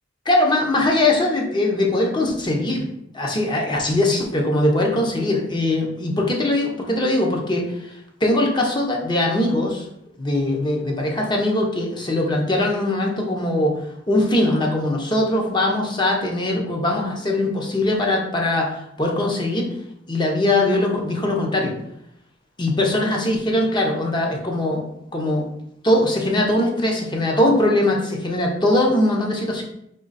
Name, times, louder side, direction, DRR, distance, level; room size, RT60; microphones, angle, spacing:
voice 1, 0.3-2.9 3.1-7.9 8.2-9.9 10.2-19.7 20.1-21.7 22.6-24.8 25.1-25.4 25.8-29.6, left 1 dB, 25° left, 0 dB, 0.8 m, -21 dB
3.8 x 3.0 x 4.0 m, 0.77 s
head